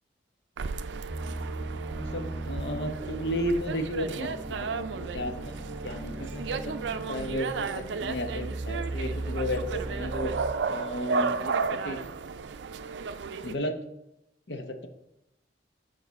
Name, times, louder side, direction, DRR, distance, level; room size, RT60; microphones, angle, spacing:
sound 1, 0.6-13.6, right 4 dB, 85° right, 0.4 m, -34 dB
sound 2, 1.1-10.5, right 2 dB, 15° right, 0.4 m, -38 dB
voice 1, 2.0-6.7 7.1-10.3 10.7-12.0 13.4-13.8 14.5-14.9, equal, 75° left, 6 dB, 0.8 m, -33 dB
8.3 x 4.7 x 4.1 m, 0.85 s
head